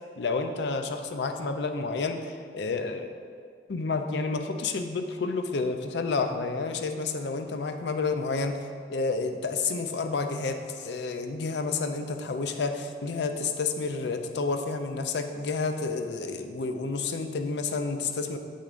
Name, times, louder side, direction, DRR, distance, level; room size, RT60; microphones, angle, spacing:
voice 1, 0.2-3.1 3.7-8.6 8.9-18.4, left 4 dB, 70° left, 7 dB, 0.5 m, -30 dB
8.1 x 6.3 x 2.5 m, 2.1 s
head